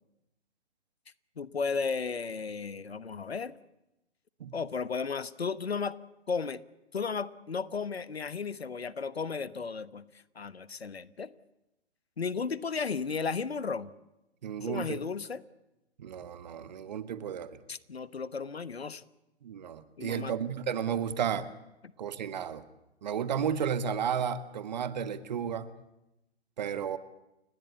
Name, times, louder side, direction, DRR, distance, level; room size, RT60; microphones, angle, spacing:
voice 1, 1.4-3.6 4.5-6.0 6.3-6.6 6.9-10.1 10.3-11.3 12.2-13.9 14.6-15.4 17.7-19.0 20.0-20.4, left 5 dB, 65° left, 17 dB, 1.2 m, -34 dB
voice 2, 14.4-15.0 16.0-17.5 19.4-21.5 22.0-22.6 23.0-25.7 26.6-27.0, right 8 dB, 40° right, 13 dB, 1.5 m, -33 dB
30.0 x 17.0 x 8.3 m, 0.92 s
figure-of-eight pair, 130°, 33 cm